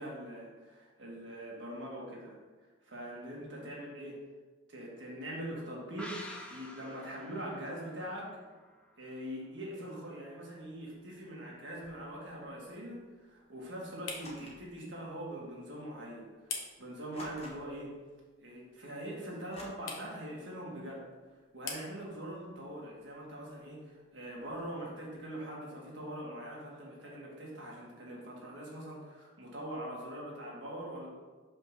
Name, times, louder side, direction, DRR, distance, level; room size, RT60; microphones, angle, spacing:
voice 1, 0.0-2.4 2.8-4.2 4.7-6.1 6.5-8.3 9.0-16.5 16.8-17.9 18.4-21.0 21.5-31.1, right 1 dB, 65° right, -4 dB, 1.8 m, -43 dB
sound 1, 6.0-9.4 9.7-9.8, left 1 dB, 5° left, 0.5 m, -49 dB
sound 2, 10.5-25.3, left 5 dB, 80° left, 1.1 m, -51 dB
sound 3, 14.2-14.7 15.7-15.8 17.1-17.9 19.5-19.6, left 1 dB, 30° left, 1.1 m, -49 dB
5.2 x 3.7 x 5.8 m, 1.3 s
head